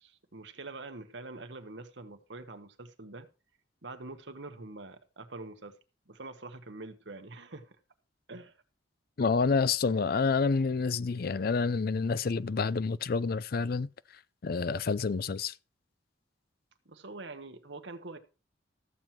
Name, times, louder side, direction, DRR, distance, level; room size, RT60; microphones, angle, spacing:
voice 1, 0.0-3.3 3.8-5.8 6.1-7.8 8.3-8.5 16.8-18.2, right 2 dB, 65° right, 1.3 m, -45 dB
voice 2, 9.2-13.9 14.4-15.5, left 4 dB, 50° left, 0.4 m, -28 dB
13.5 x 7.6 x 4.4 m
head